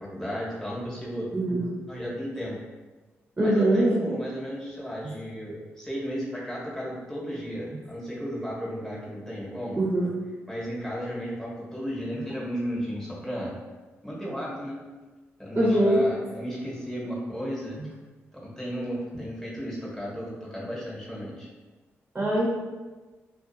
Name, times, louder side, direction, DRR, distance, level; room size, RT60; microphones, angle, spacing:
voice 1, 0.1-1.3 1.9-2.6 3.4-9.8 10.5-13.5 14.0-14.8 15.4-17.8 18.3-21.5, equal, 10° left, -6 dB, 1.2 m, -34 dB
voice 2, 1.3-1.7 3.4-4.0 5.0-5.1 9.7-10.1 15.5-16.0 17.8-17.9 22.1-22.5, right 1 dB, 30° right, -5 dB, 0.9 m, -22 dB
2.4 x 2.4 x 2.7 m, 1.2 s
supercardioid pair, 50°, 6 cm